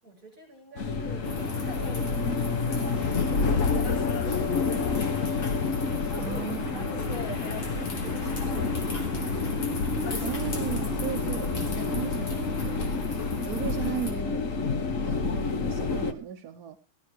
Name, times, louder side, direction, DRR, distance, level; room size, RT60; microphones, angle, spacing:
voice 1, 0.0-5.0 6.0-9.0 13.5-13.7, equal, 20° right, 8.0 m, -45 dB
sound 1, 0.8-16.1, left 4 dB, 45° left, 1.1 m, -29 dB
sound 2, 1.2-14.1, left 1 dB, 65° left, 3.6 m, -35 dB
voice 2, 6.2-7.0 10.2-16.8, right 10 dB, 60° right, 1.1 m, -37 dB
15.0 x 11.5 x 4.6 m
omnidirectional pair, 2.4 m